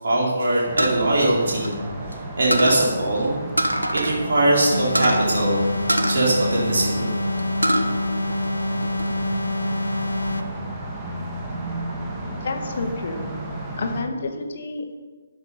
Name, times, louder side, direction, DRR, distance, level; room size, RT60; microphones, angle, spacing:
voice 1, 0.0-1.7 2.4-3.4 3.9-5.6 6.1-7.1, right 1 dB, 50° right, -4 dB, 3.8 m, -21 dB
sound 1, 0.6-14.0, right 1 dB, 15° right, 2.4 m, -33 dB
sound 2, 0.8-2.1 2.5-2.8 3.6-4.2 4.5-4.6 4.9-5.2 5.9-7.0 7.4-7.9 8.3-9.1, right 1 dB, 85° right, 1.5 m, -24 dB
sound 3, 4.7-10.6, left 1 dB, 85° left, 1.1 m, -26 dB
voice 2, 12.4-13.2 13.8-14.9, left 3 dB, 45° left, 5 dB, 2.0 m, -29 dB
13.0 x 11.0 x 5.6 m, 1.4 s
figure-of-eight pair, 140°, 0 cm